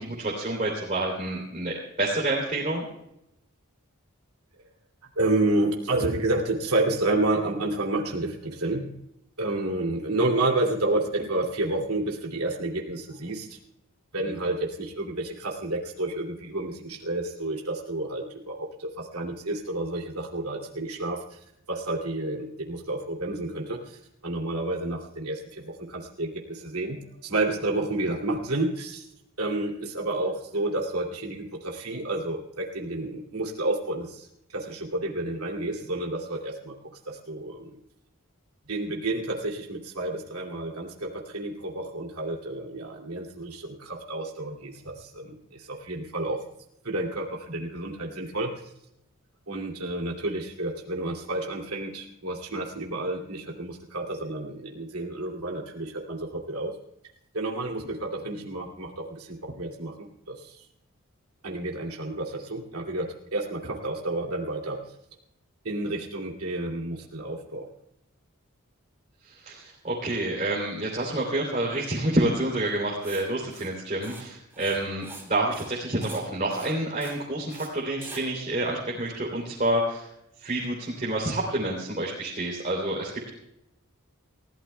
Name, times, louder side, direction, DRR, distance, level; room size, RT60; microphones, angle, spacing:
voice 1, 0.0-2.9 69.3-80.1 80.4-83.3, right 1 dB, 35° right, -4 dB, 3.1 m, -28 dB
voice 2, 5.2-8.9 9.4-13.6 14.1-21.2 21.7-29.0 29.4-34.3 34.5-36.7 37.1-37.8 38.7-46.4 46.8-48.5 49.5-56.7 57.3-59.9 60.3-60.5 61.4-64.8 65.6-67.6, right 2 dB, 85° right, -1 dB, 2.6 m, -30 dB
Writing, 73.0-73.2 73.5-73.7 74.0-74.2 74.5-75.3 75.5-75.7 76.0-76.2 76.5-76.7 77.0-77.2 77.5-77.7 78.0-78.2, right 3 dB, 10° right, 2.8 m, -44 dB
29.0 x 16.0 x 2.3 m, 0.82 s
head